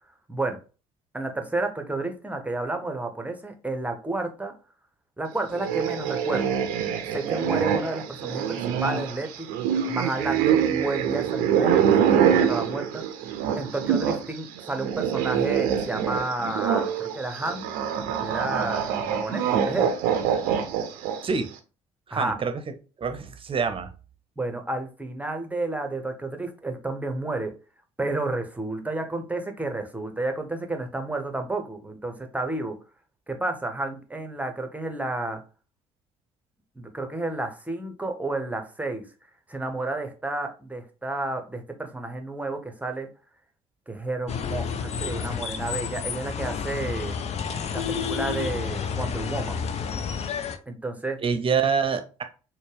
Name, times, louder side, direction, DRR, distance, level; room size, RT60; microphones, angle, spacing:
voice 1, 1.1-4.5 5.2-6.5 7.1-9.5 9.9-13.0 13.6-17.7 18.2-19.9 22.1-22.4 24.4-27.5 28.0-32.8 33.3-35.4 36.8-39.0 39.5-43.1 43.9-47.2 47.7-49.6 50.7-51.2, right 2 dB, 10° right, 5 dB, 0.9 m, -31 dB
sound 1, 5.5-14.3 14.6-21.4, right 8 dB, 70° right, 0.5 m, -25 dB
voice 2, 22.1-22.6 23.0-23.9 51.2-52.2, right 6 dB, 35° right, 8 dB, 0.7 m, -26 dB
sound 2, 44.3-50.6, left 7 dB, 45° left, 0.5 m, -30 dB
4.2 x 2.2 x 3.3 m, 0.34 s
hypercardioid pair, 50°, 15 cm